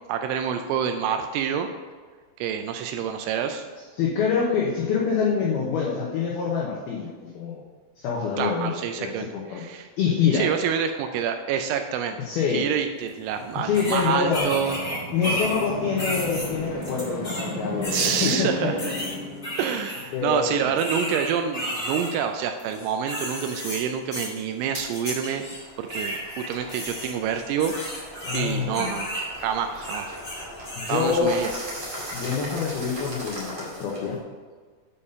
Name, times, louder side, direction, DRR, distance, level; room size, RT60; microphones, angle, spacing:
voice 1, 0.1-1.7 2.4-3.7 8.4-9.9 10.3-12.2 12.5-14.8 17.9-18.8 19.6-25.4 25.8-30.2 30.9-31.5, right 8 dB, 85° right, 7 dB, 2.8 m, -27 dB
voice 2, 4.0-7.6 8.0-8.7 9.0-9.6 10.0-10.5 12.3-12.6 13.6-14.5 15.1-18.7 20.1-20.6 28.2-28.9 30.7-31.3 32.1-34.2, left 6 dB, 85° left, -3 dB, 2.2 m, -26 dB
strangle pain, 13.1-13.2 13.7-15.7 16.0-17.5 17.8-18.3 18.8-20.0 20.8-22.1 22.6-23.8 24.1-24.4 24.9-25.6 25.9-29.2 29.7-31.2, equal, 30° left, 1.3 m, -32 dB
sound 1, 13.2-20.2, left 1 dB, 60° left, 2.7 m, -35 dB
sound 2, 24.7-24.9 25.4-34.2, equal, 50° right, 0.8 m, -38 dB
8.3 x 5.5 x 5.3 m, 1.5 s
omnidirectional pair, 5.8 m